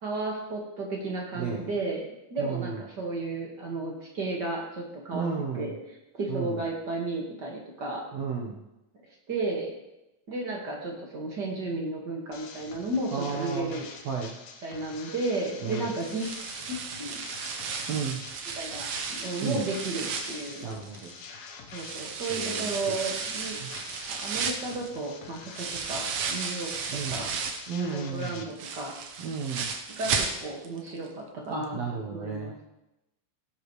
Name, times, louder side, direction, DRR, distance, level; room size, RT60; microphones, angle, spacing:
voice 1, 0.0-5.7 6.2-8.0 9.3-9.7 10.3-13.9 14.6-16.3 16.7-17.2 18.5-20.7 21.7-23.6 24.1-27.3 27.9-28.9 29.9-31.8 32.1-32.5, right 2 dB, 40° right, -2 dB, 1.7 m, -33 dB
voice 2, 2.4-2.8 5.1-5.7 6.3-6.6 8.1-8.6 13.1-13.8 14.0-14.3 15.6-15.9 17.9-18.2 19.4-19.7 20.6-21.2 22.3-23.0 23.6-23.7 26.9-27.2 27.7-28.4 29.2-29.7 31.5-32.5, right 5 dB, 65° right, -2 dB, 1.8 m, -33 dB
sound 1, 12.3-28.4, left 5 dB, 70° left, 2.6 m, -46 dB
sound 2, 16.0-21.3 21.7-27.7 28.1-30.8 31.1-31.2 31.6-31.7, right 5 dB, 80° right, 1.3 m, -34 dB
17.0 x 8.4 x 3.2 m, 0.92 s
omnidirectional pair, 4.2 m